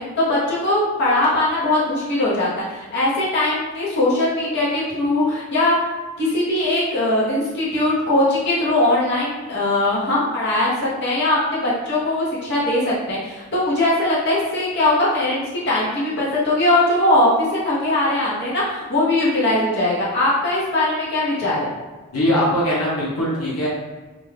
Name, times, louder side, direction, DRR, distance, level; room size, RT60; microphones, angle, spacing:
voice 1, 0.0-5.8 6.2-21.7, left 1 dB, 50° left, -8 dB, 0.9 m, -20 dB
voice 2, 22.1-23.7, equal, 85° left, -5 dB, 0.8 m, -21 dB
2.6 x 2.3 x 3.2 m, 1.2 s
head